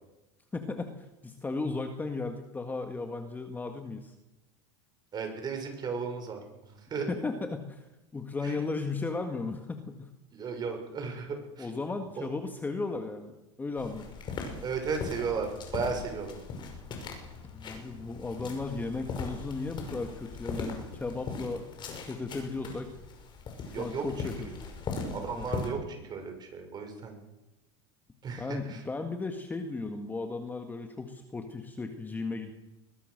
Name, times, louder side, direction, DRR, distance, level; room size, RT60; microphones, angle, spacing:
voice 1, 0.5-4.1 7.1-10.1 11.6-14.1 17.5-21.6 22.1-22.9 23.7-24.5 25.3-25.5 28.4-32.5, left 3 dB, 10° left, 6 dB, 1.7 m, -35 dB
voice 2, 5.1-7.1 8.4-8.6 10.3-11.7 12.2-12.3 14.6-16.4 23.6-24.1 24.4-24.5 25.1-27.2 28.2-28.8, right 5 dB, 30° right, 5 dB, 6.2 m, -35 dB
sound 1, 13.8-25.7, left 4 dB, 30° left, 5.7 m, -40 dB
22.0 x 20.5 x 6.7 m, 0.98 s
supercardioid pair, 130°, 15 cm